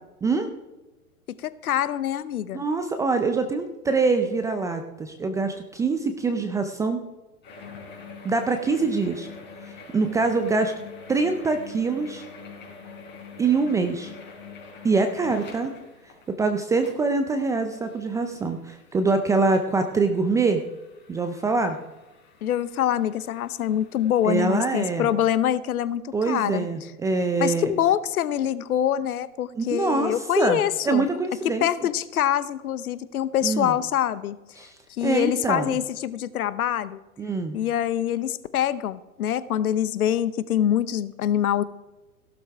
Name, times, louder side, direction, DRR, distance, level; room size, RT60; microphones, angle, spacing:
voice 1, 1.4-2.6 22.4-26.6 27.4-31.1 31.6-34.4 34.9-37.0 37.5-41.6, left 10 dB, 70° left, 16 dB, 1.0 m, -25 dB
voice 2, 2.5-7.0 8.2-9.3 9.9-10.7 11.1-12.2 13.4-14.1 14.8-15.7 16.4-20.6 21.1-21.8 24.2-25.1 26.1-27.7 29.6-31.7 33.4-33.7 34.6-34.7 35.0-35.8 37.2-37.6, right 4 dB, 10° right, 7 dB, 0.4 m, -24 dB
sound 1, 7.4-24.9, left 5 dB, 25° left, 4.1 m, -45 dB
16.5 x 12.0 x 3.5 m, 1.1 s
hypercardioid pair, 115°, 45 cm